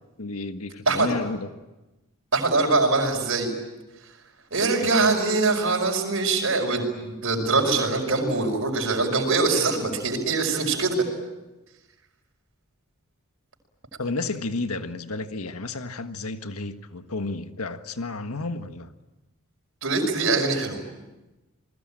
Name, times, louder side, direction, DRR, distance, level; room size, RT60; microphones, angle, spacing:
voice 1, 0.2-1.5 4.8-4.9 14.0-18.9, left 3 dB, 80° left, 1.5 m, -31 dB
voice 2, 2.3-3.5 4.0-4.1 4.5-11.0 19.8-20.8, right 3 dB, 65° right, 5.3 m, -23 dB
29.5 x 21.0 x 8.9 m
head